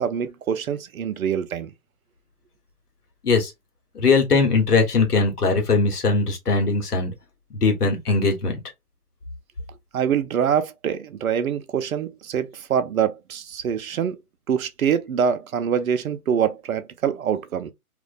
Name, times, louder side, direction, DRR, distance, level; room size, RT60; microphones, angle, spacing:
voice 1, 0.0-1.7 9.9-14.2 14.5-17.7, right 8 dB, 70° right, 0.6 m, -24 dB
voice 2, 3.9-7.1 7.5-8.6, left 4 dB, 90° left, 1.1 m, -20 dB
2.5 x 2.1 x 2.4 m
hypercardioid pair, 150°, 45 cm